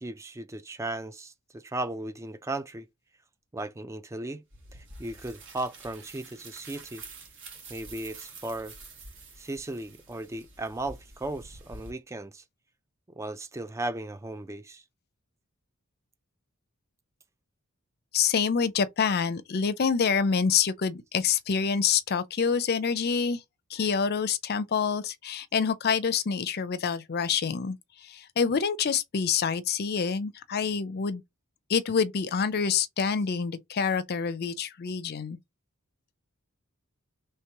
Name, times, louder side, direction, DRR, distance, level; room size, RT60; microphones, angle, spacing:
voice 1, 0.0-2.9 3.5-4.4 4.7-7.0 7.7-8.7 9.4-12.4 13.1-14.8, right 2 dB, 15° right, 0.3 m, -36 dB
sound 1, 4.5-11.9, right 3 dB, 60° right, 1.3 m, -47 dB
voice 2, 18.1-23.4 23.7-27.8 28.0-31.2 31.7-35.4, left 6 dB, 45° left, 0.5 m, -27 dB
3.2 x 2.9 x 4.6 m
head